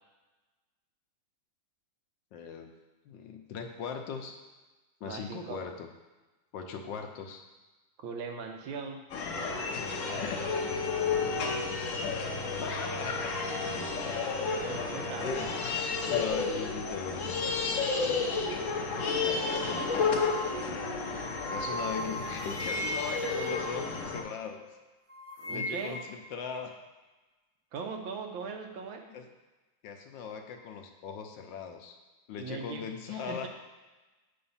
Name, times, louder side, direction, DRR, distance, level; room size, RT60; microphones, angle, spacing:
voice 1, 2.3-2.7 3.0-4.4 5.0-5.9 6.5-7.5 10.1-10.4 12.5-13.4 15.2-15.5 16.0-18.3 19.2-20.1 21.5-24.6 25.5-26.7 29.1-29.2 29.8-32.0 32.3-33.5, left 6 dB, 75° left, 4 dB, 1.4 m, -39 dB
voice 2, 5.0-5.6 8.0-9.0 14.2-14.3 14.6-15.6 25.4-26.0 27.7-29.1 32.3-33.5, right 5 dB, 90° right, 4 dB, 1.6 m, -40 dB
sound 1, 9.1-24.2, left 4 dB, 55° left, 0.9 m, -32 dB
sound 2, 19.5-24.8 25.1-26.2, equal, 70° right, 0.3 m, -39 dB
7.8 x 4.2 x 5.5 m, 1.2 s
omnidirectional pair, 2.1 m